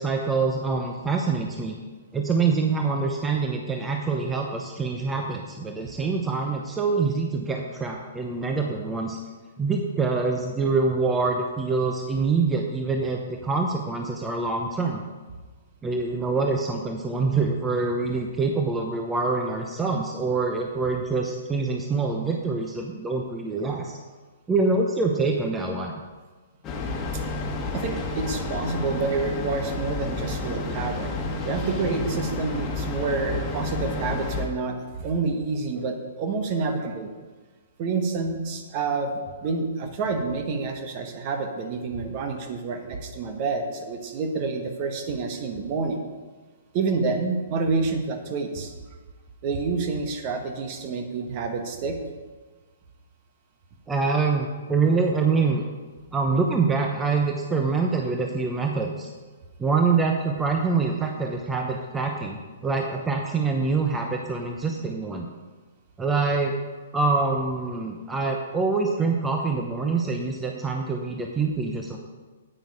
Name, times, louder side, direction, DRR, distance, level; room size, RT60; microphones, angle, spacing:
voice 1, 0.0-1.8 2.1-9.2 9.6-15.0 15.8-23.9 24.5-26.0 53.9-55.6 56.1-59.1 59.6-65.3 66.0-66.5 66.9-72.0, right 4 dB, 15° right, 2 dB, 0.9 m, -25 dB
Train, 26.6-34.5, left 3 dB, 20° left, 1.8 m, -30 dB
voice 2, 27.7-31.1 31.4-37.1 37.8-39.1 39.4-46.0 46.7-48.7 49.4-52.0, right 4 dB, 40° right, 5 dB, 1.5 m, -28 dB
9.1 x 9.1 x 4.9 m, 1.3 s
hypercardioid pair, 125°, 0 cm